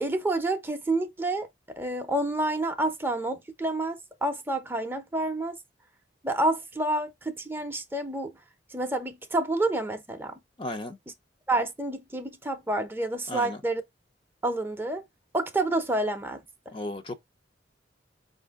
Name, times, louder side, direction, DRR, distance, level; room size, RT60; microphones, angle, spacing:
voice 1, 0.0-5.6 6.2-8.3 8.7-10.3 11.5-13.8 14.4-15.0 15.3-16.4, right 2 dB, 10° right, 0.6 m, -29 dB
voice 2, 10.6-11.0 13.3-13.6 16.7-17.1, left 1 dB, 30° left, 0.5 m, -34 dB
4.7 x 2.6 x 3.4 m
head